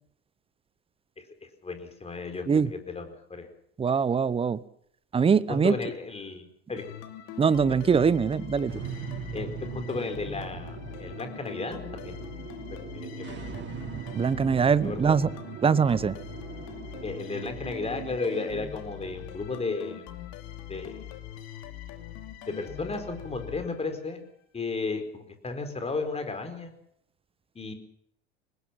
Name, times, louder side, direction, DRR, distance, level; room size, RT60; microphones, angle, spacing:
voice 1, 1.6-3.5 5.5-6.8 7.7-7.8 9.3-12.3 12.7-13.5 14.8-15.1 17.0-20.0 20.7-21.0 22.4-24.2 24.5-26.7 27.5-27.7, left 3 dB, 20° left, 6 dB, 4.6 m, -34 dB
voice 2, 3.8-4.6 5.1-5.8 7.4-8.8 14.1-15.3 15.6-16.2, right 6 dB, 15° right, 19 dB, 0.9 m, -23 dB
sound 1, 6.8-24.3, left 11 dB, 50° left, 3.0 m, -42 dB
sound 2, 8.7-18.7, right 9 dB, 30° right, 1.7 m, -40 dB
24.0 x 20.0 x 5.9 m, 0.70 s
hypercardioid pair, 80°, 34 cm